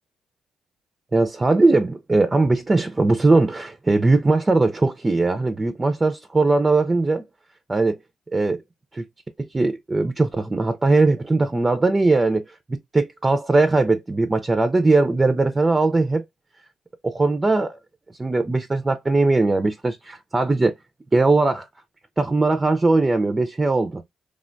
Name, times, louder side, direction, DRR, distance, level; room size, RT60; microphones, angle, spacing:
voice 1, 1.1-7.2 7.7-8.0 8.3-8.6 8.9-9.0 9.4-16.2 17.0-17.8 18.2-20.7 21.1-21.7 22.2-24.0, right 3 dB, 20° right, 0.4 m, -20 dB
3.2 x 2.2 x 2.4 m
cardioid pair, 90°, 0 cm